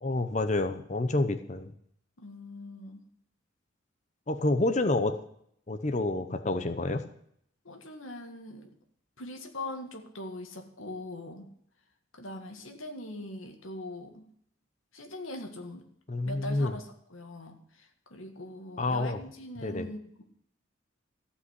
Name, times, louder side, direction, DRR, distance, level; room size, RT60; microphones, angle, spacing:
voice 1, 0.0-1.7 4.3-5.2 5.7-7.0 16.1-16.7 18.8-19.2 19.6-19.9, left 2 dB, 35° left, 8 dB, 0.8 m, -28 dB
voice 2, 2.2-3.1 7.6-8.7 9.2-11.5 12.1-14.2 14.9-15.9 16.2-20.2, left 1 dB, 85° left, 4 dB, 1.9 m, -41 dB
14.5 x 5.7 x 9.6 m, 0.67 s
head